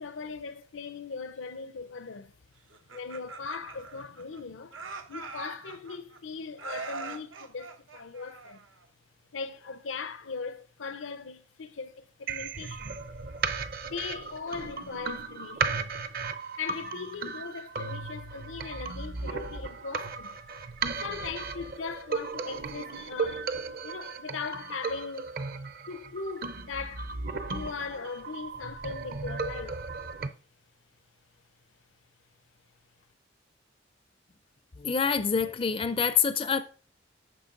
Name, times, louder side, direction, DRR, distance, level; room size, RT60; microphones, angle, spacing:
voice 1, 0.0-2.3 2.9-4.8 5.1-8.6 9.3-13.0 13.8-15.9 16.6-20.4 21.0-23.5 23.8-25.3 25.9-27.1 27.5-29.8, left 5 dB, 90° left, 0.7 m, -39 dB
Laughter, 2.7-4.4 4.7-6.2 6.6-8.8, right 4 dB, 90° right, 1.2 m, -42 dB
sound 1, 12.3-30.3, right 4 dB, 50° right, 0.7 m, -35 dB
voice 2, 34.8-36.6, left 6 dB, 30° left, 0.4 m, -26 dB
10.0 x 6.3 x 3.9 m
head